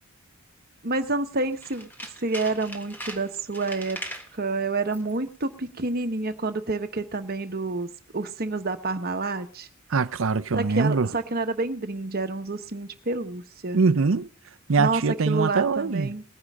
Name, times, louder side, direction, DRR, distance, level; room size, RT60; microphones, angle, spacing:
voice 1, 0.8-4.0 4.3-9.7 10.5-13.8 14.8-16.2, right 3 dB, 45° right, 1.2 m, -29 dB
Tools, 1.5-4.3 4.8-5.2 5.4-5.5, equal, 10° left, 1.4 m, -39 dB
voice 2, 9.9-11.1 13.7-14.3 14.7-16.1, right 4 dB, 65° right, 0.6 m, -23 dB
20.0 x 9.7 x 3.6 m
head